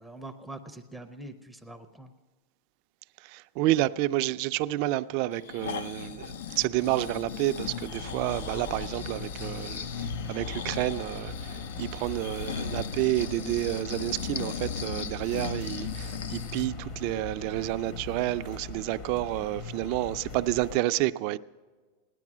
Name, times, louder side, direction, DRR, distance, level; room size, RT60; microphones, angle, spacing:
voice 1, 0.0-2.1, right 2 dB, ahead, 0.5 m, -44 dB
voice 2, 3.2-21.4, right 16 dB, 50° right, 0.4 m, -30 dB
Breathing, 5.3-16.7 17.2-17.3, left 7 dB, 90° left, 0.5 m, -38 dB
sound 1, 6.0-20.8, left 4 dB, 45° left, 1.0 m, -40 dB
16.5 x 10.5 x 6.1 m
supercardioid pair, 145°, 0 cm